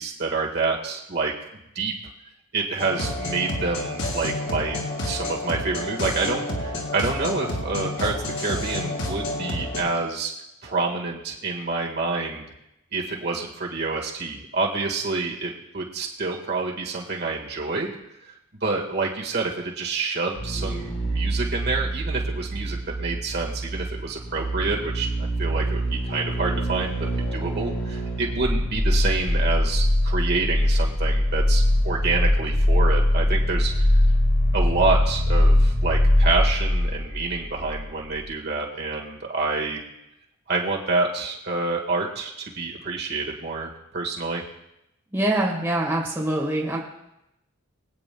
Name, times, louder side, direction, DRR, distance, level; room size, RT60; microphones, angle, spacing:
voice 1, 0.0-1.3 1.7-1.9 2.5-10.3 10.6-12.4 12.9-18.0 18.6-34.0 34.5-39.8 40.5-44.4, right 3 dB, 45° right, -1 dB, 1.7 m, -28 dB
sound 1, 2.8-9.8, left 1 dB, 75° left, 2.7 m, -29 dB
sound 2, 20.3-37.9 38.1-38.2, left 1 dB, 45° left, 1.6 m, -23 dB
voice 2, 45.1-46.8, right 1 dB, 10° right, -4 dB, 1.7 m, -24 dB
24.0 x 9.1 x 2.3 m, 0.86 s
head